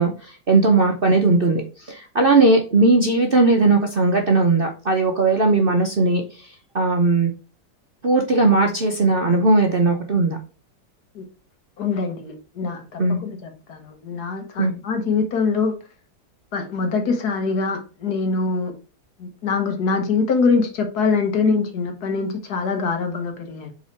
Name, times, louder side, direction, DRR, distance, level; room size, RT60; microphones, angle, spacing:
voice 1, 0.0-6.5 6.7-7.3 8.0-10.4 13.0-13.2 14.6-14.7, right 3 dB, 45° right, 1 dB, 0.8 m, -18 dB
voice 2, 11.8-13.0 13.7-13.8 14.0-15.7 16.5-18.7 19.4-23.7, left 4 dB, 65° left, 5 dB, 1.7 m, -23 dB
5.5 x 4.0 x 4.5 m, 0.35 s
omnidirectional pair, 1.9 m